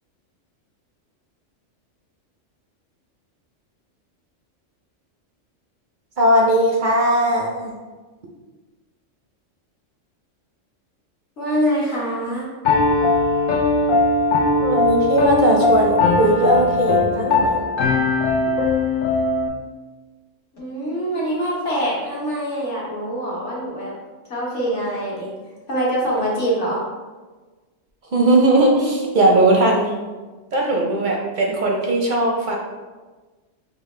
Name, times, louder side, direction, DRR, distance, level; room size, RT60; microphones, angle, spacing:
voice 1, 6.2-7.7 14.6-17.6 28.0-30.0 30.5-32.6, right 1 dB, 55° right, -1 dB, 0.6 m, -18 dB
voice 2, 11.4-12.5 20.5-23.9 24.3-25.3 25.7-26.8, equal, 65° left, -5 dB, 1.5 m, -24 dB
Piano, 12.6-19.5, left 3 dB, 85° left, 1.0 m, -19 dB
5.3 x 2.1 x 3.1 m, 1.3 s
omnidirectional pair, 1.3 m